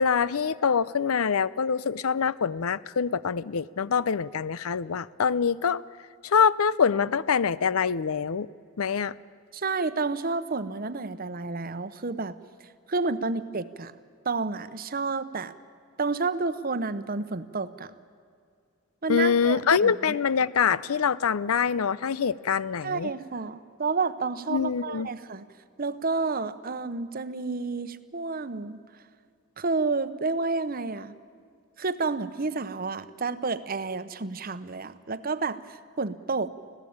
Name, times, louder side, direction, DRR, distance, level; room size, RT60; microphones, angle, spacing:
voice 1, 0.0-5.8 6.2-8.5 8.8-9.1 19.1-23.1 24.5-25.1, left 6 dB, 85° left, 19 dB, 0.6 m, -25 dB
voice 2, 9.5-12.4 12.9-13.9 14.2-15.5 16.0-17.9 19.0-20.2 22.8-25.5 25.8-28.8 29.6-31.1 31.8-36.5, right 4 dB, 45° right, 13 dB, 0.9 m, -30 dB
25.0 x 16.5 x 8.7 m, 2.3 s
head